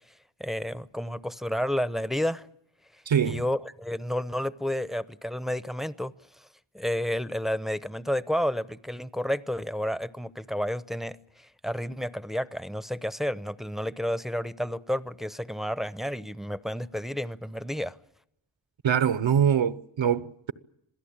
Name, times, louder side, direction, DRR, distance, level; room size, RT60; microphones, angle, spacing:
voice 1, 0.1-2.5 2.9-6.5 6.7-18.0, equal, ahead, 0.8 m, -31 dB
voice 2, 3.1-3.5 18.8-20.5, right 8 dB, 70° right, 1.0 m, -24 dB
27.0 x 16.5 x 8.8 m
cardioid pair, 60°, 48 cm